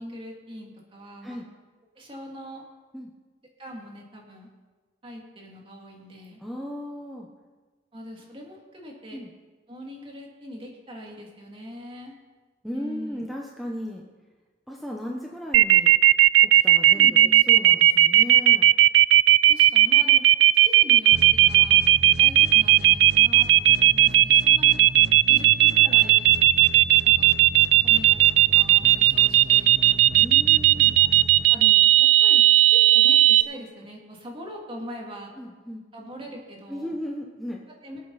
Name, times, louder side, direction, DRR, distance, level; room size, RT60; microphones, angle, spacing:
voice 1, 0.0-1.4 1.9-2.6 3.6-4.5 5.0-6.4 7.9-9.2 9.7-12.1 12.7-13.2 16.9-17.5 19.5-20.2 20.6-21.1 21.5-21.8 22.2-24.8 25.3-26.3 27.2-27.3 27.8-28.1 28.5-29.7 30.9-31.0 31.5-32.4 32.7-35.3 35.9-37.0 37.8-38.0, equal, 30° right, -1 dB, 2.6 m, -41 dB
voice 2, 6.4-7.3 9.1-9.3 12.6-14.0 14.7-16.0 16.4-17.1 17.5-18.7 25.3-25.4 30.2-30.9 35.4-35.8 36.7-37.6, equal, ahead, -2 dB, 1.0 m, -35 dB
sound 1, 15.5-33.4, right 14 dB, 85° right, 0.3 m, -15 dB
sound 2, 21.1-32.0, right 2 dB, 60° right, 0.8 m, -37 dB
24.5 x 8.3 x 4.2 m, 1.4 s
head